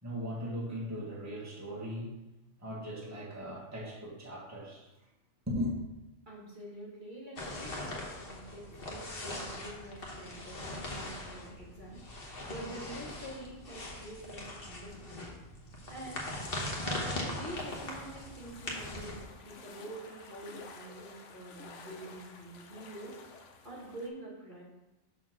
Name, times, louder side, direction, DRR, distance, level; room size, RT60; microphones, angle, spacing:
voice 1, 0.0-2.1 2.6-4.9 5.5-5.7, equal, 10° right, -5 dB, 1.5 m, -38 dB
voice 2, 6.3-12.0 12.5-15.3 15.9-16.2 16.8-23.2 23.6-24.6, right 1 dB, 40° right, -6 dB, 1.6 m, -46 dB
sound 1, 7.4-19.2, left 1 dB, 45° left, 1.3 m, -40 dB
sound 2, 17.6-24.1, left 4 dB, 65° left, 1.1 m, -52 dB
5.7 x 4.1 x 6.2 m, 1.0 s
omnidirectional pair, 1.4 m